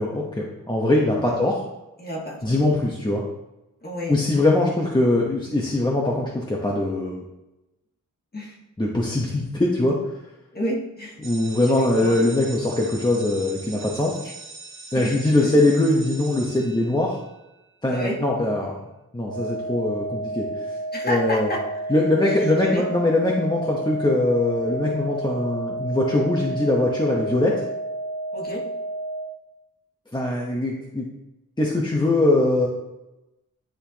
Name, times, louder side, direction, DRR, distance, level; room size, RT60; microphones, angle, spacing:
voice 1, 0.0-1.6 2.4-3.2 4.1-7.2 8.8-10.0 11.2-14.2 14.9-17.2 17.8-18.7 19.1-20.8 21.0-21.5 21.9-27.6 30.1-31.1 31.6-32.7, left 2 dB, 15° left, -3 dB, 0.9 m, -22 dB
voice 2, 2.0-2.5 3.8-4.2 8.3-8.6 10.5-11.2 11.6-12.2 14.2-14.3 14.9-15.1 15.4-15.5 17.9-18.2 20.9-21.9 22.2-22.8 28.3-28.6, equal, 30° left, -2 dB, 1.5 m, -30 dB
sound 1, 11.2-17.4, right 4 dB, 40° right, 0.8 m, -41 dB
sound 2, 19.3-29.3, right 2 dB, 55° left, 1.4 m, -31 dB
10.0 x 4.3 x 2.9 m, 0.97 s
wide cardioid pair, 130°, 33 cm